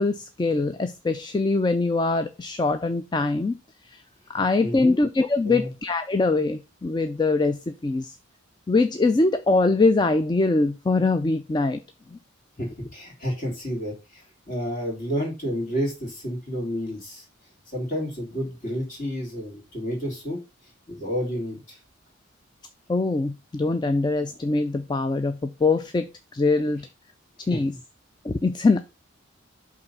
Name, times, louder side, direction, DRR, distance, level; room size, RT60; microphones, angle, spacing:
voice 1, 0.0-3.6 3.8-4.0 4.3-8.2 8.7-11.8 22.9-26.9 27.5-27.7 28.2-28.8, left 3 dB, 20° left, 0.3 m, -23 dB
voice 2, 4.6-5.0 5.4-5.7 12.6-17.2 17.7-20.4 20.9-21.8 27.5-27.6, equal, 40° left, 2.9 m, -30 dB
5.7 x 3.8 x 5.4 m
head